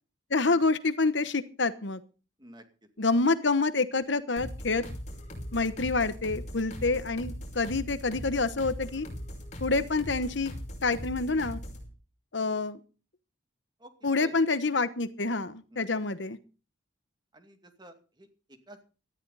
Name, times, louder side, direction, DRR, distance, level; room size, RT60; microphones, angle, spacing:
voice 1, 0.3-2.0 3.0-4.8 5.5-9.1 9.6-10.5 10.8-11.6 12.3-12.8 14.0-16.4, left 3 dB, 65° left, 13 dB, 1.1 m, -27 dB
sound 1, 4.4-11.9, equal, 35° left, 5.6 m, -40 dB
voice 2, 14.2-14.6 15.7-15.8 17.3-18.8, right 1 dB, 20° right, 6 dB, 2.3 m, -50 dB
18.5 x 13.5 x 4.1 m, 0.35 s
head